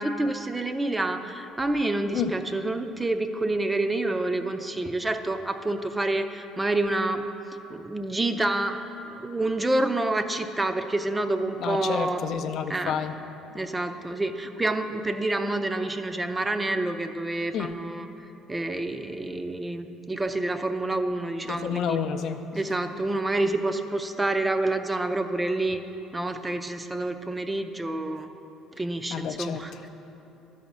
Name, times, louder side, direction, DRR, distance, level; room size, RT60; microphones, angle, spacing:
voice 1, 0.0-7.2 7.7-8.8 9.2-12.2 12.7-13.0 13.5-18.1 18.5-22.0 22.5-25.8 26.1-28.3 28.8-29.7, right 2 dB, 15° right, 8 dB, 0.4 m, -28 dB
voice 2, 11.6-13.2 17.5-17.8 21.4-22.4 29.1-29.9, left 7 dB, 60° left, 7 dB, 0.4 m, -30 dB
11.5 x 4.2 x 6.0 m, 3.0 s
supercardioid pair, 95°, 0 cm